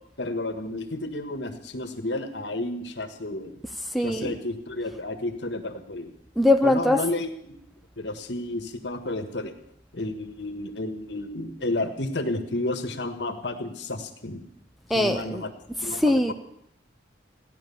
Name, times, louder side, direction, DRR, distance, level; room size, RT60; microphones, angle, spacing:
voice 1, 0.2-3.6 4.0-6.1 6.6-7.6 8.0-9.5 9.9-14.4 14.9-15.5 15.8-16.3, left 2 dB, 70° left, 7 dB, 1.6 m, -31 dB
voice 2, 3.9-4.3 6.4-7.0 14.9-15.4 15.9-16.3, left 1 dB, ahead, 8 dB, 0.6 m, -21 dB
15.5 x 10.5 x 7.1 m, 0.75 s
head